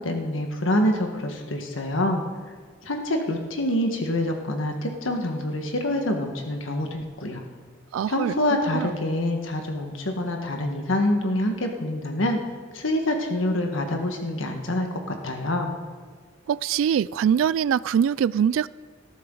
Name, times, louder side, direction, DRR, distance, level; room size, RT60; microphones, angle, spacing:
voice 1, 0.0-2.2 2.8-7.4 8.1-12.4 12.7-15.7, left 1 dB, 85° left, 1.5 m, -26 dB
voice 2, 7.9-8.3 8.7-8.9 16.5-18.7, right 8 dB, 85° right, 0.3 m, -23 dB
19.0 x 13.0 x 3.9 m
head